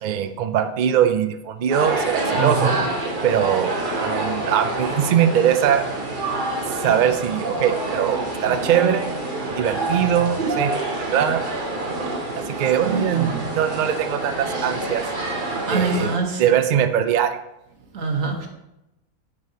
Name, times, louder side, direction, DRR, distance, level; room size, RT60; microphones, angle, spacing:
voice 1, 0.0-2.8 3.2-3.8 4.0-5.8 6.7-9.1 9.6-11.4 12.4-15.0 15.7-17.4, right 9 dB, 90° right, 8 dB, 0.4 m, -21 dB
sound 1, 1.7-16.2, right 2 dB, 40° right, 1.1 m, -27 dB
voice 2, 2.4-2.8 12.8-13.0 13.3-13.4 15.7-16.4 17.9-18.5, right 4 dB, 70° right, 2 dB, 1.4 m, -24 dB
9.5 x 5.1 x 2.8 m, 0.89 s
omnidirectional pair, 1.5 m